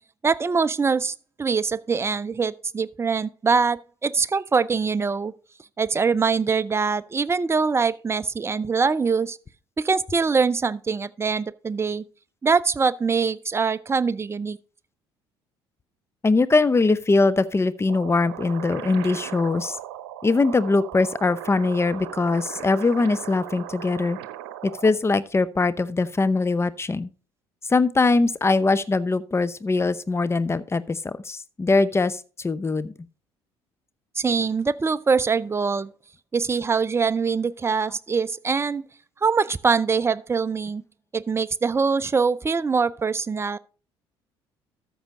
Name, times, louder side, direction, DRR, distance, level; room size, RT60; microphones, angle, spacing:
voice 1, 0.2-5.3 5.8-9.4 9.8-12.0 12.4-14.6 34.2-35.9 36.3-38.8 39.2-40.8 41.1-43.6, right 5 dB, 20° right, 0.5 m, -23 dB
voice 2, 16.2-19.8 20.2-24.2 24.6-27.1 27.7-32.9, left 3 dB, 20° left, 0.7 m, -22 dB
sound 1, 17.9-24.9, right 12 dB, 70° right, 0.8 m, -38 dB
13.0 x 6.3 x 3.8 m
figure-of-eight pair, 55°, 13 cm